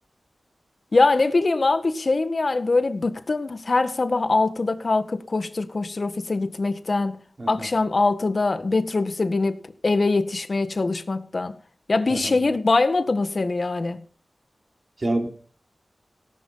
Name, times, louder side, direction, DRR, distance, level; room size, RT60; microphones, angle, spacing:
voice 1, 0.9-7.2 7.5-11.5 11.9-14.0, left 3 dB, 50° left, 1.7 m, -23 dB
voice 2, 15.0-15.3, right 1 dB, 40° right, 4.1 m, -27 dB
18.0 x 11.0 x 5.7 m
wide cardioid pair, 80°, 0 cm